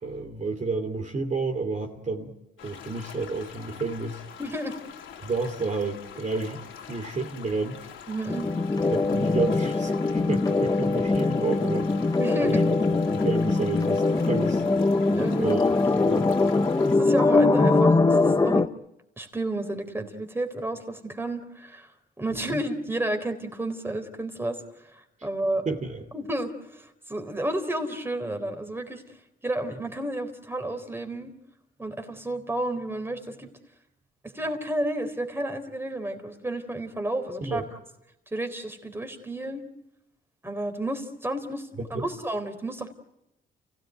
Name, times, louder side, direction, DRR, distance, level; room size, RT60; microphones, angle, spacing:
voice 1, 0.0-2.3 2.6-4.2 5.2-7.8 8.9-11.9 12.4-12.6 13.1-14.6 15.3-15.6 16.1-16.3 22.3-22.6 25.6-26.0 37.4-37.6 41.9-42.0, right 3 dB, 40° right, 3 dB, 2.9 m, -30 dB
sound 1, 2.6-17.0, left 7 dB, 80° left, 3.4 m, -44 dB
voice 2, 4.4-4.8 8.1-8.5 12.2-12.6 14.9-15.5 16.9-18.7 19.2-21.9 22.2-25.7 26.1-29.0 29.4-31.3 31.8-33.5 34.2-37.6 38.3-39.6 40.4-42.9, right 1 dB, 10° right, 6 dB, 3.8 m, -31 dB
sound 2, 8.3-18.7, left 3 dB, 20° left, 0.9 m, -22 dB
29.5 x 17.0 x 9.4 m, 0.87 s
cardioid pair, 90°, 20 cm